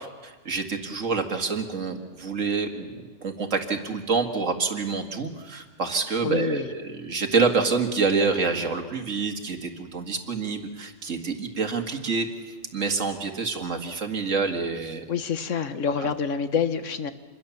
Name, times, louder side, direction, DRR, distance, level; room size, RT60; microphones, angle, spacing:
voice 1, 0.0-15.0 15.8-16.1, right 4 dB, 80° right, 5 dB, 2.3 m, -27 dB
voice 2, 6.2-6.7 15.1-17.1, left 6 dB, 75° left, 10 dB, 1.5 m, -27 dB
27.0 x 22.0 x 7.2 m, 1.3 s
omnidirectional pair, 1.3 m